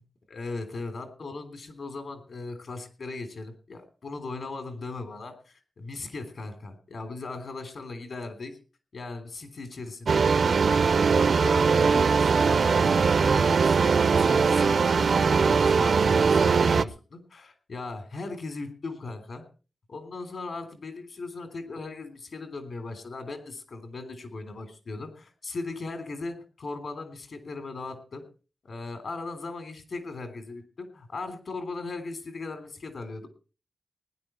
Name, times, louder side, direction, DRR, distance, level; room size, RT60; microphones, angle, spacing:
voice 1, 0.3-8.6 8.9-10.8 11.2-19.5 19.9-28.3 28.6-33.3, left 3 dB, 60° left, 8 dB, 3.3 m, -38 dB
sound 1, 10.1-16.9, right 5 dB, 60° right, 0.6 m, -21 dB
19.0 x 11.0 x 4.4 m, 0.36 s
wide cardioid pair, 155°, 0 cm